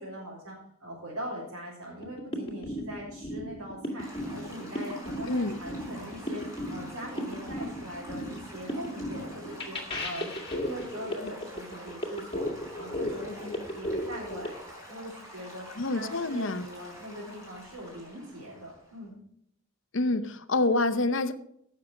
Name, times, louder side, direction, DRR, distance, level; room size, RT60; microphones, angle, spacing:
voice 1, 0.0-19.1, equal, 90° right, -7 dB, 4.0 m, -41 dB
sound 1, 2.0-14.5, left 1 dB, 25° left, 2.0 m, -36 dB
Stream / Gurgling / Trickle dribble, 4.0-19.1, equal, 15° right, 4.0 m, -48 dB
voice 2, 5.3-5.6 15.8-16.7 19.9-21.3, left 2 dB, 65° left, 11 dB, 0.8 m, -27 dB
16.0 x 6.6 x 4.9 m, 0.70 s
head